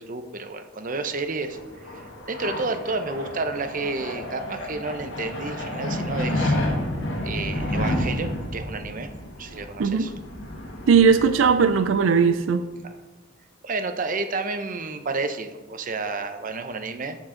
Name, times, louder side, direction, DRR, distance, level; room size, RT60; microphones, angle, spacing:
voice 1, 0.0-1.6 1.8-6.6 7.2-9.1 9.4-10.1 13.6-17.2, right 3 dB, 45° right, 8 dB, 0.7 m, -30 dB
sound 1, 1.2-12.5, left 1 dB, 75° left, 1.6 m, -30 dB
voice 2, 9.8-10.1 10.9-12.6, right 6 dB, 85° right, 10 dB, 0.4 m, -18 dB
13.5 x 4.6 x 3.8 m, 1.2 s
head